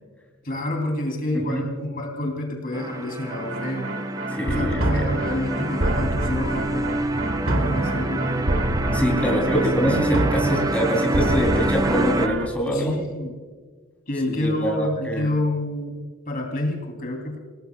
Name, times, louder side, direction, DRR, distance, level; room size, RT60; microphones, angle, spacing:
voice 1, 0.4-3.9 4.4-8.3 9.1-9.6 12.7-13.4 14.1-17.4, left 1 dB, 45° left, 2 dB, 3.0 m, -29 dB
sound 1, 2.7-12.3, right 1 dB, 15° right, 0.5 m, -27 dB
sound 2, 3.3-12.5, right 1 dB, 70° right, 1.8 m, -26 dB
voice 2, 4.3-5.1 8.9-13.0 14.3-15.3, equal, 5° left, -1 dB, 3.1 m, -24 dB
29.0 x 18.5 x 2.3 m, 1.5 s
head